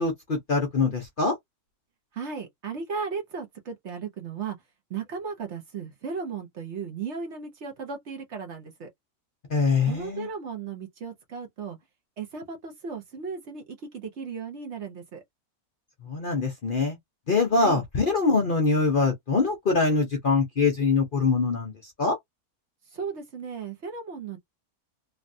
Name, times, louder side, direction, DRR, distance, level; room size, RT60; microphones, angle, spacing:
voice 1, 0.0-1.3 9.5-10.3 16.0-17.0 17.3-22.2, left 4 dB, 45° left, 0.7 m, -24 dB
voice 2, 2.1-4.6 4.9-8.9 9.9-11.8 12.2-15.2 17.6-17.8 22.9-24.4, right 5 dB, 55° right, 1.0 m, -35 dB
3.2 x 2.3 x 2.6 m
omnidirectional pair, 1.6 m